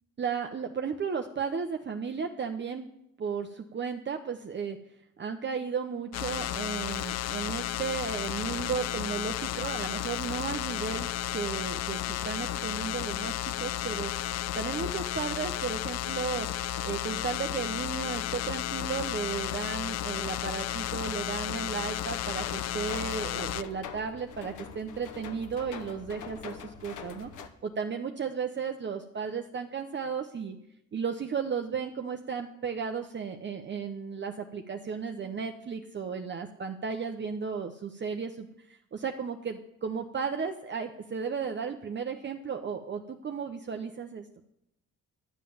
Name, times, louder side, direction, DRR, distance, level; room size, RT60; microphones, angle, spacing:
voice 1, 0.2-2.9 3.2-4.8 5.2-14.1 14.5-16.5 16.8-27.3 27.6-30.5 30.9-44.2, right 6 dB, 35° right, 4 dB, 0.9 m, -34 dB
sound 1, 6.1-23.6, left 13 dB, 60° left, 0.5 m, -33 dB
sound 2, 22.3-27.5, left 7 dB, 80° left, 1.1 m, -44 dB
11.5 x 7.5 x 7.2 m, 0.81 s
cardioid pair, 90°, 30 cm